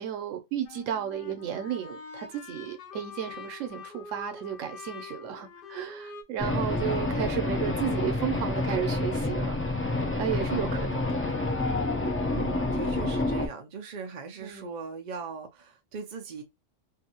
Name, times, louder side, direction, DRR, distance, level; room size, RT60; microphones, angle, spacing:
voice 1, 0.0-11.3 14.4-14.7, right 10 dB, 90° right, 1.0 m, -33 dB
sound 1, 0.6-6.2, left 5 dB, 60° left, 0.6 m, -44 dB
sound 2, 6.4-13.5, left 2 dB, 20° left, 0.3 m, -28 dB
voice 2, 12.3-16.4, right 5 dB, 55° right, 0.5 m, -39 dB
2.6 x 2.6 x 2.8 m
omnidirectional pair, 1.3 m